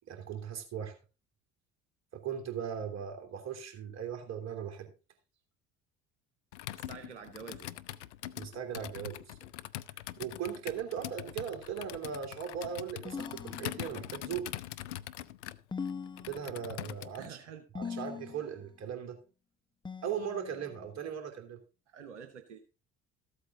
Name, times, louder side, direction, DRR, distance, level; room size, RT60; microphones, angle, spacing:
voice 1, 0.1-0.9 2.1-4.9 8.4-9.3 10.2-14.5 16.2-17.4 17.7-19.2 20.0-21.6, right 8 dB, 50° right, 5 dB, 3.1 m, -38 dB
Computer keyboard, 6.5-17.3, left 14 dB, 80° left, 0.6 m, -43 dB
voice 2, 6.9-7.7 17.2-18.0 21.9-22.6, right 7 dB, 85° right, 8 dB, 0.9 m, -48 dB
sound 1, 13.0-14.2 15.7-16.8 17.7-18.6 19.8-20.8, left 5 dB, 15° left, 0.7 m, -42 dB
14.0 x 8.3 x 3.7 m, 0.32 s
hypercardioid pair, 60°, 35 cm